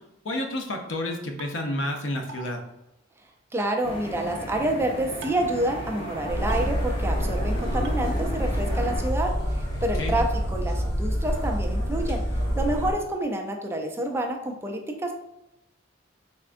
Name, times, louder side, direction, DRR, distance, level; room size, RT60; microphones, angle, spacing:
voice 1, 0.2-2.6 10.0-10.2, left 1 dB, 80° left, 4 dB, 0.6 m, -30 dB
sound 1, 1.4-1.5 2.3-2.4 3.6-3.8 5.2-5.5 6.5-6.6 7.8-7.9, right 4 dB, 65° right, 0.6 m, -40 dB
voice 2, 3.5-12.2 12.6-15.1, right 1 dB, 15° right, 2 dB, 0.4 m, -28 dB
sound 2, 3.8-9.0, right 1 dB, 30° left, 0.7 m, -35 dB
sound 3, 6.3-12.9, equal, 60° left, 1.2 m, -27 dB
3.6 x 3.3 x 2.5 m, 0.89 s
head